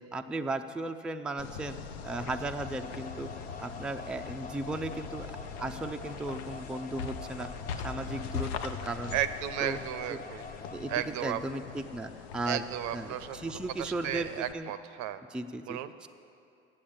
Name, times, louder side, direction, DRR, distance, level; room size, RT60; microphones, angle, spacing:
voice 1, 0.0-1.8 2.0-3.3 3.6-5.3 5.6-7.5 7.8-9.2 9.6-9.8 10.1-10.2 10.7-12.6 12.9-14.7 15.3-16.1, right 2 dB, 5° right, 6 dB, 0.4 m, -36 dB
sound 1, 1.4-14.5, left 6 dB, 75° left, 0.6 m, -41 dB
sound 2, 2.0-11.1, left 3 dB, 30° left, 0.7 m, -47 dB
voice 2, 9.1-10.4 10.9-11.4 12.5-13.4 13.8-15.2 15.7-16.0, right 11 dB, 65° right, 12 dB, 0.6 m, -34 dB
8.5 x 7.4 x 8.6 m, 2.5 s
hypercardioid pair, 65°, 31 cm